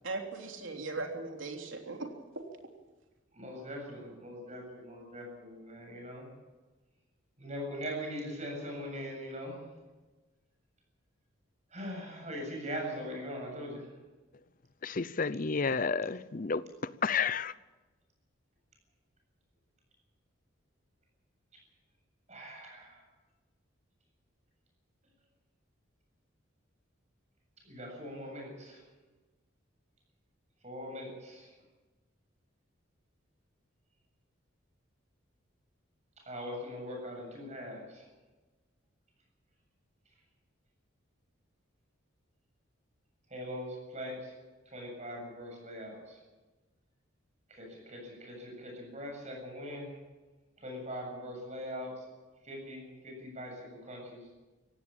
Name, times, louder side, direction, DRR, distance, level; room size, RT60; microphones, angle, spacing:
voice 1, 0.0-2.1 2.3-2.4, right 3 dB, 70° right, 3.3 m, -38 dB
voice 2, 3.4-6.3 7.4-9.5 11.7-13.9 22.3-23.0 27.6-28.8 30.6-31.5 36.3-38.0 43.3-44.3 44.7-46.2 47.6-49.9 50.6-51.9 52.5-54.2, equal, 35° right, 7.7 m, -41 dB
voice 3, 14.8-17.5, left 5 dB, 40° left, 0.6 m, -31 dB
18.0 x 16.5 x 8.9 m
head